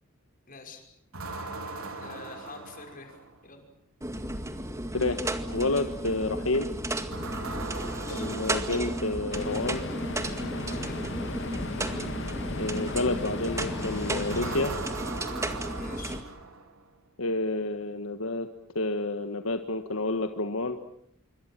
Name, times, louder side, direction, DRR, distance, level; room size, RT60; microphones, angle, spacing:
voice 1, 0.5-0.8 2.0-3.2 3.4-3.6 7.9-8.3 10.7-11.0 15.7-16.2, left 3 dB, 45° left, 4 dB, 5.9 m, -46 dB
sound 1, 1.1-3.5 7.1-9.6 14.3-16.9, right 3 dB, 90° right, 3.7 m, -39 dB
sound 2, 4.0-16.2, right 1 dB, 15° right, 2.0 m, -34 dB
voice 2, 5.5-6.7 8.1-9.8 12.6-14.7 17.2-18.5 18.7-20.8, left 2 dB, 80° left, 7 dB, 1.6 m, -29 dB
sound 3, 9.3-14.6, left 2 dB, 60° left, 2.8 m, -36 dB
27.0 x 24.5 x 7.6 m, 0.72 s
head